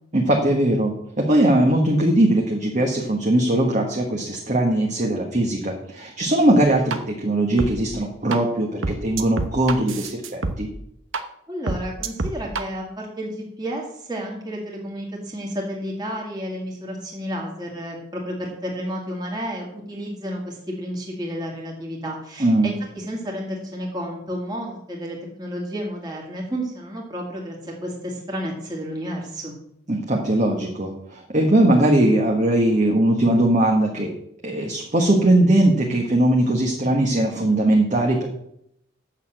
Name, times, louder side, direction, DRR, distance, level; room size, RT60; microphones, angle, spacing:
voice 1, 0.1-10.7 22.4-22.7 29.9-34.1 34.4-38.3, right 1 dB, 35° right, 0 dB, 1.3 m, -20 dB
sound 1, 6.9-7.0 7.6-7.7 8.3-8.4 8.8-10.6 11.1-11.2 11.7-12.6, right 3 dB, 70° right, 1.0 m, -25 dB
voice 2, 11.5-29.5, equal, 20° right, -2 dB, 2.1 m, -31 dB
8.2 x 6.5 x 7.8 m, 0.75 s
head